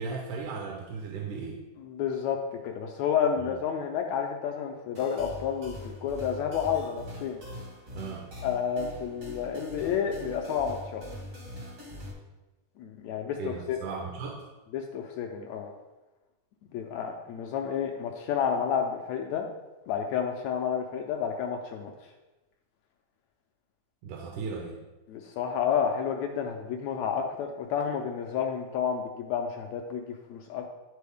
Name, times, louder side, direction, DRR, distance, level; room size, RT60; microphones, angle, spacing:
voice 1, 0.0-1.6 3.4-3.5 7.9-8.3 13.4-14.4 24.0-24.8, right 4 dB, 80° right, 0 dB, 2.3 m, -36 dB
voice 2, 1.8-7.4 8.4-11.1 12.8-13.8 14.7-15.7 16.7-19.5 19.9-21.9 25.1-30.7, left 7 dB, 80° left, 3 dB, 1.6 m, -30 dB
sound 1, 4.9-12.1, left 1 dB, 55° right, 0.9 m, -43 dB
11.0 x 4.1 x 3.5 m, 1.1 s
omnidirectional pair, 3.6 m